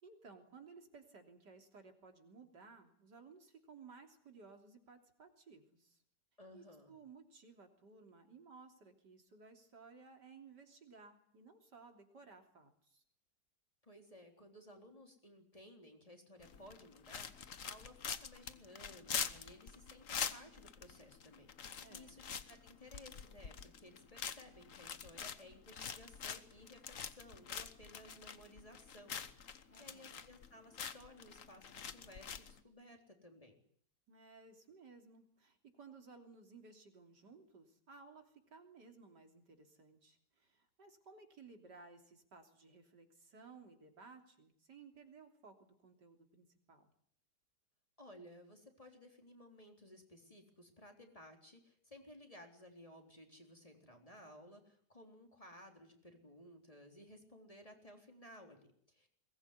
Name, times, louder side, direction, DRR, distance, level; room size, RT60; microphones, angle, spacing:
voice 1, 0.0-6.0 6.5-13.0 21.8-22.2 29.7-30.3 34.1-46.9, right 4 dB, 80° right, 4 dB, 3.9 m, -58 dB
voice 2, 6.4-7.0 13.8-33.6 48.0-59.1, left 1 dB, 20° left, 3 dB, 3.8 m, -58 dB
sound 1, 16.4-32.6, left 7 dB, 50° left, 1.5 m, -45 dB
22.5 x 19.5 x 9.7 m, 0.64 s
omnidirectional pair, 1.8 m